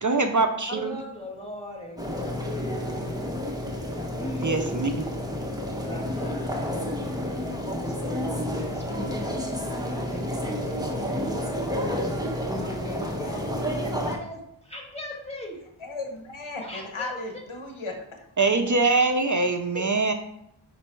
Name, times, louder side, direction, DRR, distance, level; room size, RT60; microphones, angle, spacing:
voice 1, 0.0-1.0 4.4-4.9 18.4-20.1, right 3 dB, 40° right, 6 dB, 0.5 m, -23 dB
voice 2, 0.7-3.2 4.2-4.7 5.8-6.6 7.8-9.5 9.9-11.4 12.6-15.6 16.6-17.4 19.7-19.9, left 1 dB, 15° left, -2 dB, 1.6 m, -38 dB
sound 1, 2.0-14.2, equal, 10° right, 1.0 m, -30 dB
voice 3, 15.8-18.0, left 3 dB, 85° left, 2 dB, 1.1 m, -35 dB
5.0 x 4.5 x 4.5 m, 0.77 s
wide cardioid pair, 50°, 48 cm